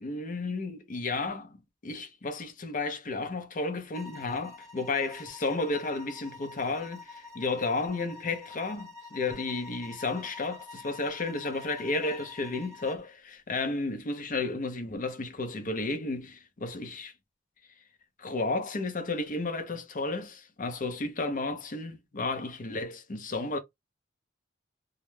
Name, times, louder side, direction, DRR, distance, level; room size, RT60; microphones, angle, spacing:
voice 1, 0.0-1.6 1.8-17.1 18.2-23.6, left 3 dB, 45° left, 0.5 m, -32 dB
sound 1, 3.9-13.1, left 3 dB, 15° right, 0.9 m, -47 dB
2.3 x 2.1 x 3.0 m
head